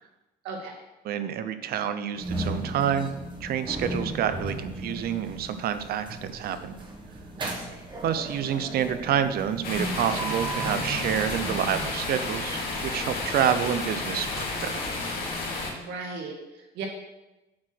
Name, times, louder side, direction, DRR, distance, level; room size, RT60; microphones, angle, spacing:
voice 1, 0.4-0.8 7.4-7.8 15.7-16.9, right 4 dB, 85° right, 1 dB, 1.9 m, -37 dB
voice 2, 1.0-3.1 3.4-6.8 8.0-14.8, right 9 dB, 65° right, 11 dB, 0.7 m, -28 dB
sound 1, 2.2-12.3, right 2 dB, 30° right, 1.5 m, -36 dB
sound 2, 9.6-15.7, left 3 dB, 60° left, 2.7 m, -31 dB
8.4 x 4.8 x 6.1 m, 1.0 s
cardioid pair, 110°, 17 cm